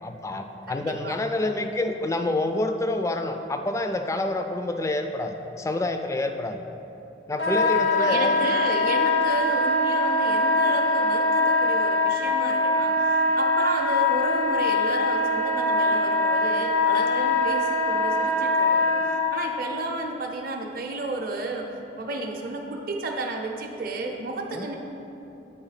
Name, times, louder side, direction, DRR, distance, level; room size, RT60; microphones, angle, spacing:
voice 1, 0.0-6.6 7.3-8.4 24.5-24.7, left 2 dB, 15° left, 6 dB, 0.3 m, -27 dB
voice 2, 0.7-1.2 7.9-21.7 22.0-24.8, right 2 dB, 55° right, 1 dB, 0.6 m, -32 dB
Wind instrument woodwind instrument, 7.4-19.2, left 2 dB, 80° left, 1.1 m, -22 dB
8.1 x 3.4 x 5.7 m, 2.9 s
head